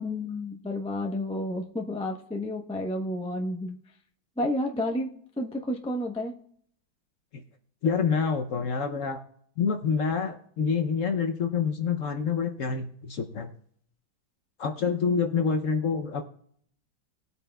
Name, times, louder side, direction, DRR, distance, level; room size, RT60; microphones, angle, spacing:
voice 1, 0.0-3.8 4.4-6.3, left 1 dB, 10° left, 2 dB, 0.3 m, -31 dB
voice 2, 7.8-9.2 9.6-13.5 14.6-16.3, left 6 dB, 60° left, 6 dB, 0.9 m, -27 dB
19.5 x 8.2 x 2.3 m, 0.64 s
omnidirectional pair, 1.9 m